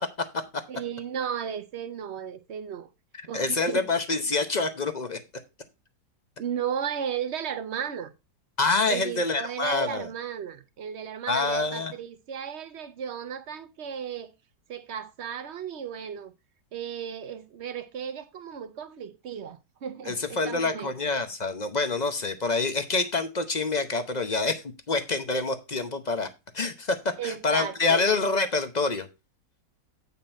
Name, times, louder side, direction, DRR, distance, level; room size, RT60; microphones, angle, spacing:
voice 1, 0.7-2.9 3.3-3.9 6.4-8.1 8.9-14.3 14.7-16.3 16.7-20.9 27.2-28.0, right 8 dB, 55° right, 0.8 m, -35 dB
voice 2, 3.3-5.2 8.6-10.1 11.3-11.9 20.1-26.3 26.5-29.1, left 3 dB, 40° left, 0.6 m, -26 dB
8.9 x 5.6 x 4.3 m
omnidirectional pair, 1.8 m